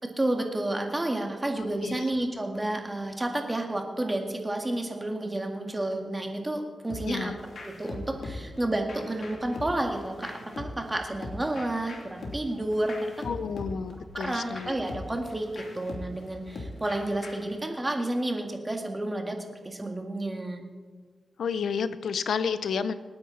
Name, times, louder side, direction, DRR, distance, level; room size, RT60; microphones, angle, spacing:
voice 1, 0.0-7.3 7.6-13.1 14.1-20.7, right 1 dB, 20° right, 3 dB, 2.0 m, -31 dB
sound 1, 6.9-17.6, left 2 dB, 70° left, 2.9 m, -42 dB
voice 2, 7.0-7.4 13.2-14.8 21.4-22.9, left 6 dB, 90° left, 13 dB, 0.7 m, -30 dB
26.0 x 9.7 x 4.2 m, 1.5 s
wide cardioid pair, 115°, 0 cm